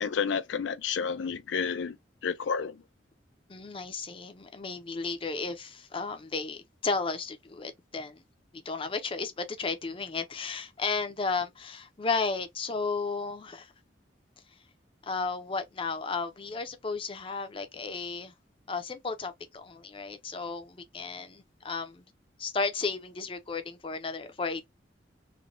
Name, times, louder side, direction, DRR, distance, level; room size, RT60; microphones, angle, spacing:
voice 1, 0.0-1.9 2.2-2.7, left 6 dB, 90° left, 0.4 m, -30 dB
voice 2, 3.5-8.2 8.5-13.7 15.0-18.3 18.7-22.0 22.4-24.7, left 4 dB, 30° left, 0.5 m, -34 dB
3.1 x 2.2 x 2.5 m
head